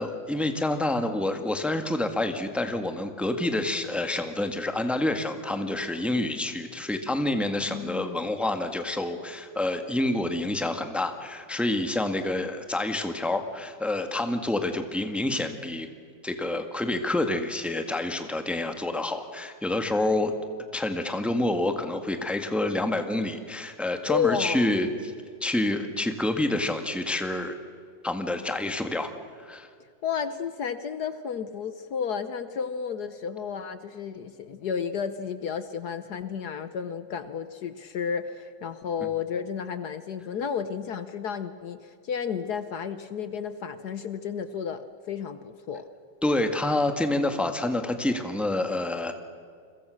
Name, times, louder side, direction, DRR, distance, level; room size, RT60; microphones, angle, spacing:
voice 1, 0.0-15.9 16.2-20.3 20.7-25.1 25.4-27.6 28.0-29.1 29.4-29.7 46.2-49.1, left 1 dB, ahead, 7 dB, 1.5 m, -28 dB
voice 2, 7.7-8.3 24.1-24.8 30.0-45.9, left 7 dB, 60° left, 11 dB, 1.4 m, -32 dB
29.5 x 23.0 x 6.5 m, 2.2 s
omnidirectional pair, 2.0 m